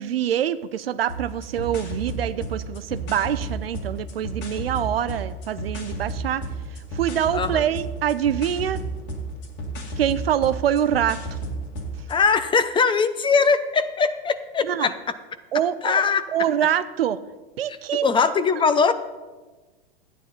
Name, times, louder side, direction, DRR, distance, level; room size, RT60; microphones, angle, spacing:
voice 1, 0.0-6.4 6.9-8.8 10.0-11.4 14.6-14.9 15.5-16.0 16.3-17.2 17.6-18.2, right 10 dB, 85° right, 14 dB, 0.6 m, -25 dB
sound 1, 1.1-12.2, right 2 dB, 40° left, 2.0 m, -33 dB
voice 2, 12.1-14.9 15.8-16.2 17.7-18.9, left 5 dB, 15° left, 12 dB, 0.6 m, -21 dB
13.0 x 9.5 x 4.2 m, 1.3 s
hypercardioid pair, 110°, 29 cm